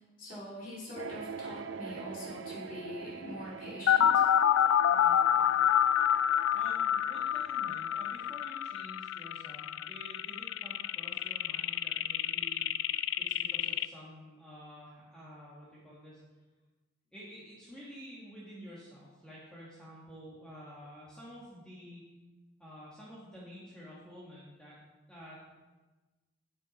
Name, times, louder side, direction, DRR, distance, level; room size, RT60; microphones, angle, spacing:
voice 1, 0.2-4.2, left 1 dB, 45° left, -6 dB, 3.4 m, -43 dB
sound 1, 1.0-8.3, right 5 dB, 75° right, 0.4 m, -45 dB
sound 2, 3.9-13.9, left 10 dB, 75° left, 0.3 m, -28 dB
voice 2, 6.5-16.2 17.1-22.0 22.6-24.8 25.1-25.4, equal, 5° left, -8 dB, 1.8 m, -50 dB
9.6 x 7.7 x 4.3 m, 1.2 s
head